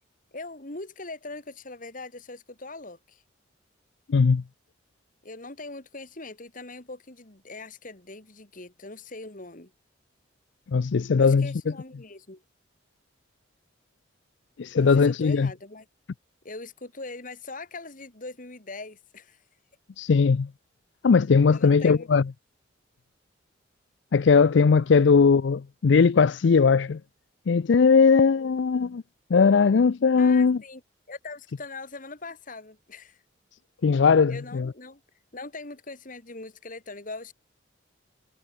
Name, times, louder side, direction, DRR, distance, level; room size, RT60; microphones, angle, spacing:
voice 1, 0.3-3.2 5.2-9.7 11.2-12.4 14.7-15.9 16.4-19.4 21.5-22.1 30.2-30.8 31.1-33.2 34.3-35.0 35.3-37.3, left 3 dB, 45° left, 2.7 m, -41 dB
voice 2, 4.1-4.4 10.7-11.5 14.6-15.5 20.0-20.5 21.0-22.2 24.1-27.0 27.5-29.0 29.3-30.6 33.8-34.7, left 5 dB, 65° left, 0.4 m, -19 dB
head